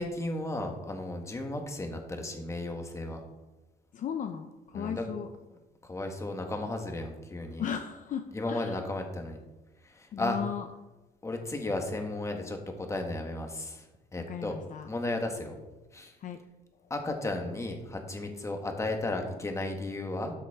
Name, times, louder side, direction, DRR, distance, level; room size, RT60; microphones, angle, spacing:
voice 1, 0.0-3.2 4.7-5.0 5.8-7.7 8.3-9.4 9.9-10.4 11.2-13.8 14.1-14.6 14.8-15.6 15.9-16.1 16.9-20.3, left 2 dB, 15° left, 4 dB, 1.4 m, -34 dB
voice 2, 3.9-5.3 7.6-8.8 10.1-10.7 14.2-14.9 16.2-16.4, left 8 dB, 50° left, 7 dB, 0.6 m, -36 dB
12.5 x 5.9 x 3.6 m, 1.1 s
cardioid pair, 110°, 17 cm